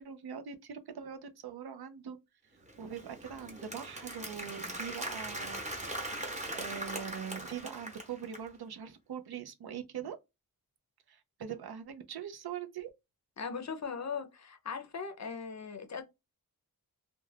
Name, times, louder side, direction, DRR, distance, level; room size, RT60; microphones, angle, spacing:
voice 1, 0.0-2.2 2.8-5.6 6.5-10.1 11.1-12.9, right 8 dB, 90° right, 0.5 m, -42 dB
Applause, 2.7-8.5, right 1 dB, 20° right, 0.9 m, -40 dB
voice 2, 13.4-16.0, left 5 dB, 50° left, 0.5 m, -39 dB
2.3 x 2.2 x 3.2 m
wide cardioid pair, 90°, 37 cm